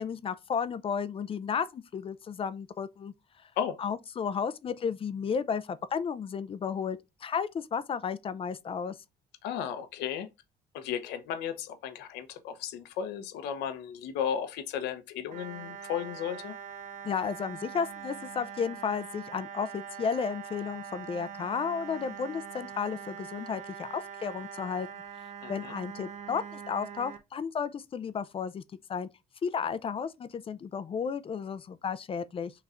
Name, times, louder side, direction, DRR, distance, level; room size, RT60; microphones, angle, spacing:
voice 1, 0.0-3.1 3.8-8.9 17.0-24.9 25.5-28.6 28.9-29.1 29.4-32.5, left 6 dB, 35° left, 0.4 m, -33 dB
voice 2, 9.4-10.3 10.7-16.5 25.4-25.7, left 8 dB, 85° left, 0.8 m, -34 dB
sound 1, 15.3-27.2, right 7 dB, 45° right, 0.9 m, -43 dB
5.7 x 3.1 x 2.5 m
cardioid pair, 110°, 17 cm